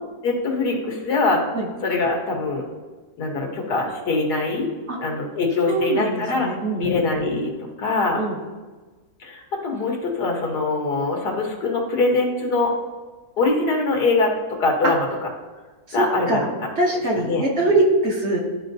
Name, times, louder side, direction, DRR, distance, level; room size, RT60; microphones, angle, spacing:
voice 1, 0.2-1.4 1.8-2.6 3.2-4.7 5.0-6.5 6.8-7.5 7.8-8.2 9.2-12.7 13.4-14.3 14.6-15.1 15.9-16.5 17.2-17.5, left 3 dB, 85° left, 0 dB, 1.8 m, -23 dB
voice 2, 5.7-7.0 8.1-8.4 14.8-14.9 15.9-16.4 16.8-18.4, right 2 dB, 50° right, -2 dB, 1.2 m, -22 dB
12.5 x 4.7 x 2.7 m, 1.3 s
omnidirectional pair, 1.7 m